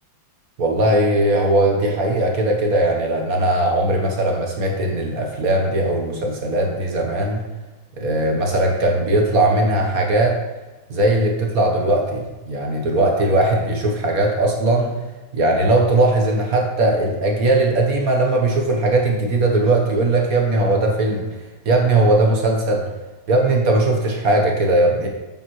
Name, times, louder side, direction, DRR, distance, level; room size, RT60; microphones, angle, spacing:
voice 1, 0.6-7.4 8.0-10.4 10.9-14.9 15.3-21.2 21.6-22.8 23.3-25.1, right 2 dB, 50° right, 1 dB, 1.3 m, -19 dB
9.1 x 7.2 x 3.0 m, 1.1 s
omnidirectional pair, 2.2 m